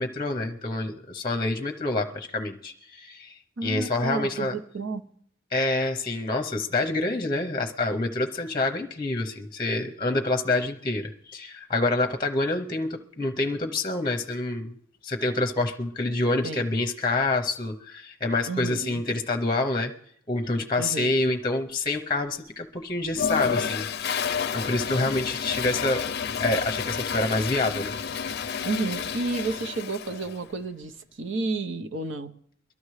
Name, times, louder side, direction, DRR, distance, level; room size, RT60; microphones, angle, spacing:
voice 1, 0.0-4.6 5.5-14.7 15.0-19.9 20.3-26.1 26.4-27.9, left 2 dB, 20° left, 4 dB, 0.8 m, -27 dB
voice 2, 3.6-5.0 16.4-16.7 18.5-19.0 20.8-21.1 28.6-32.3, right 3 dB, 60° right, 8 dB, 0.8 m, -31 dB
Toilet flush, 23.1-30.4, left 6 dB, 50° left, 0.5 m, -30 dB
22.5 x 13.0 x 3.2 m, 0.64 s
head